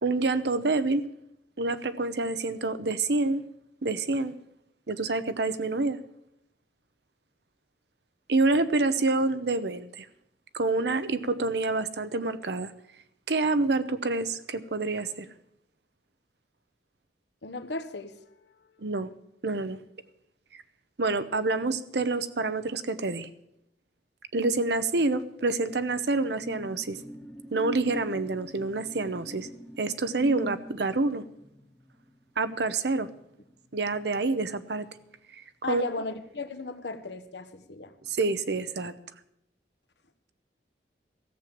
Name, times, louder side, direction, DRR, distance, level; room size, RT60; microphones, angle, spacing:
voice 1, 0.0-1.0 1.6-3.4 3.8-4.4 4.9-6.0 8.3-10.1 10.5-12.7 13.3-15.3 18.8-19.1 19.4-19.8 21.0-23.3 24.3-27.0 27.5-29.5 29.8-31.2 32.4-33.1 33.7-34.9 35.7-35.8 38.0-38.9, right 3 dB, 70° right, 12 dB, 0.9 m, -27 dB
voice 2, 17.4-18.2 35.6-37.9, left 3 dB, 75° left, 9 dB, 1.2 m, -35 dB
sound 1, 25.3-34.3 34.7-34.9, equal, 5° left, 1.2 m, -44 dB
14.5 x 7.7 x 8.7 m, 0.80 s
head